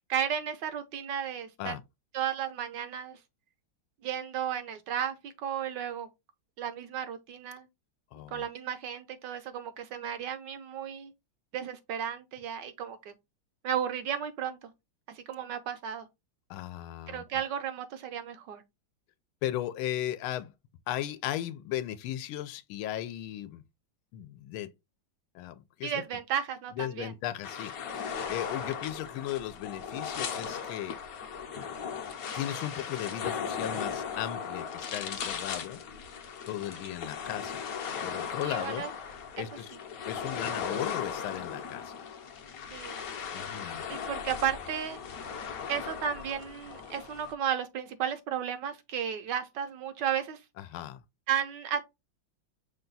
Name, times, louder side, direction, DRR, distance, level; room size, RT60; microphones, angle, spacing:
voice 1, 0.1-1.7 2.1-3.2 4.0-6.1 6.6-7.7 8.3-11.1 11.5-13.1 13.6-14.7 15.1-16.1 17.1-18.6 25.8-27.1 38.4-38.9 39.4-39.5 42.7-43.0 43.9-45.0 45.7-50.4 51.3-51.8, right 9 dB, 75° right, 1.1 m, -34 dB
voice 2, 8.1-8.5 16.5-17.4 19.4-20.5 20.9-23.6 24.1-24.7 25.3-26.0 26.8-31.0 32.3-36.1 36.5-37.6 38.0-38.8 39.3-39.8 40.1-41.9 43.3-43.9 50.6-51.0, left 12 dB, 90° left, 1.4 m, -36 dB
sound 1, 27.4-47.3, left 6 dB, 60° left, 1.0 m, -37 dB
5.8 x 2.2 x 3.9 m
omnidirectional pair, 2.2 m